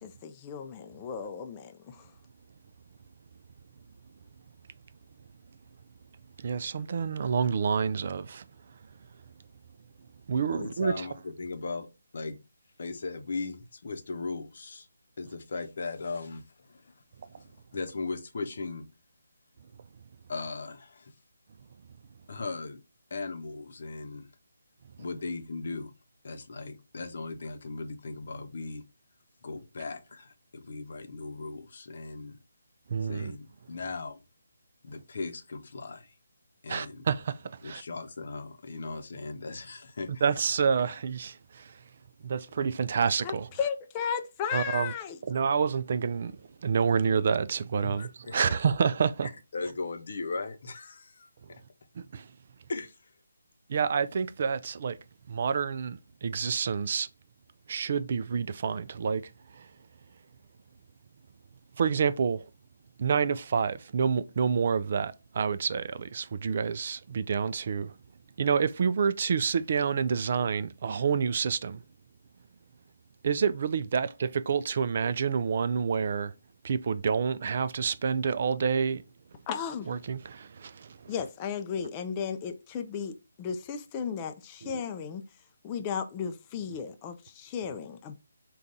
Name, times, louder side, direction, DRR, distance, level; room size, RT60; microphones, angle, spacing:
voice 1, 0.0-2.1 43.2-45.2 79.5-80.0 81.1-85.2 85.6-88.2, left 7 dB, 20° left, 0.4 m, -35 dB
voice 2, 6.4-8.4 10.3-11.1 32.9-33.3 36.7-37.8 40.2-41.8 42.2-43.5 44.5-44.9 45.2-46.4 46.6-49.3 52.0-52.3 53.7-55.0 55.3-57.1 57.7-59.7 61.8-62.5 63.0-67.9 68.4-71.8 73.2-76.3 76.6-79.0 79.9-81.1 84.6-84.7, right 6 dB, 45° right, 0.3 m, -28 dB
voice 3, 10.5-11.9 12.1-12.4 12.8-14.9 15.2-17.0 17.4-18.8 20.3-21.1 22.3-22.8 23.1-24.3 25.0-25.9 26.2-28.8 29.4-32.4 33.1-34.2 34.8-36.1 36.6-37.1 37.6-40.2 47.8-48.6 49.5-51.3 52.7-53.1, left 3 dB, 60° left, 0.7 m, -38 dB
3.8 x 2.3 x 3.9 m
figure-of-eight pair, 155°, 0 cm